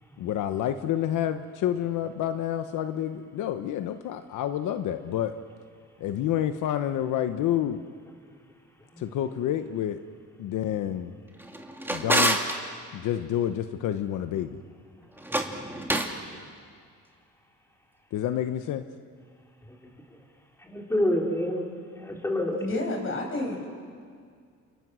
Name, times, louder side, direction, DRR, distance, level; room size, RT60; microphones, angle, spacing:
voice 1, 0.2-5.4 6.0-7.8 9.0-10.0 10.4-11.2 11.9-12.4 12.9-14.6 18.1-18.8, left 11 dB, 85° left, 9 dB, 1.0 m, -29 dB
Drawer open or close, 11.4-12.6 15.2-16.2, right 1 dB, 5° right, 2.7 m, -27 dB
voice 2, 20.6-21.7 22.0-22.9, left 1 dB, 10° left, 0 dB, 4.0 m, -28 dB
voice 3, 22.6-23.7, left 2 dB, 45° left, 2 dB, 7.1 m, -30 dB
30.0 x 27.0 x 6.3 m, 2.1 s
cardioid pair, 90°, 30 cm